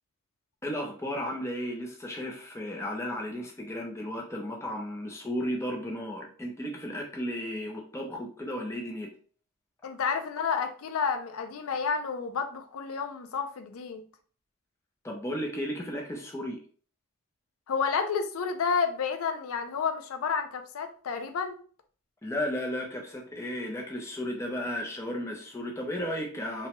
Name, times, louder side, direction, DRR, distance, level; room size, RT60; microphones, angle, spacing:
voice 1, 0.6-9.1 15.0-16.6 22.2-26.7, equal, 15° left, 0 dB, 0.5 m, -34 dB
voice 2, 9.8-14.0 17.7-21.6, left 5 dB, 85° left, 7 dB, 0.4 m, -30 dB
2.9 x 2.2 x 2.9 m, 0.43 s
head